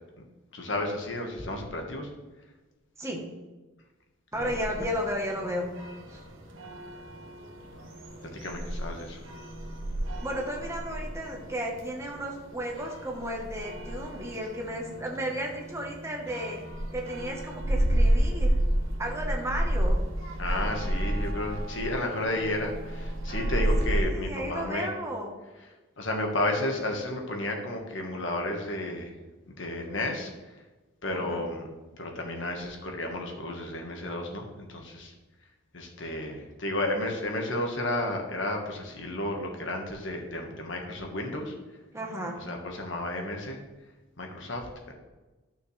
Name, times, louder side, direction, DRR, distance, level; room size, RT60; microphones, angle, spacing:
voice 1, 0.5-2.1 4.3-4.5 8.3-9.2 20.4-24.9 26.0-29.1 29.5-30.6 31.0-31.7 32.0-35.1 35.7-41.5 42.4-43.6 44.2-44.9, left 1 dB, 65° left, 2 dB, 1.4 m, -32 dB
voice 2, 3.0-3.3 4.3-5.7 6.1-6.2 10.2-16.6 16.9-18.5 19.0-20.0 23.9-25.4 31.1-31.5 41.9-42.4, equal, 15° right, 0 dB, 1.1 m, -34 dB
sound 1, 4.3-24.0, right 1 dB, 70° right, 1.4 m, -31 dB
12.0 x 6.3 x 3.2 m, 1.2 s
head